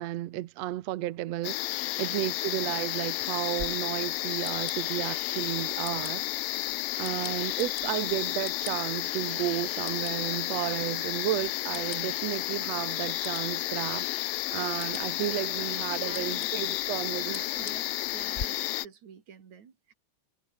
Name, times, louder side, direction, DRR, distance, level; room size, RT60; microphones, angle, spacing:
voice 1, 0.0-6.2 7.0-17.7, right 15 dB, 75° right, 1.5 m, -33 dB
sound 1, 1.4-18.9, left 16 dB, 85° left, 2.7 m, -32 dB
sound 2, 3.6-18.4, left 5 dB, 50° left, 0.8 m, -47 dB
voice 2, 16.0-16.9 17.1-19.9, right 7 dB, 55° right, 4.1 m, -49 dB
omnidirectional pair, 4.0 m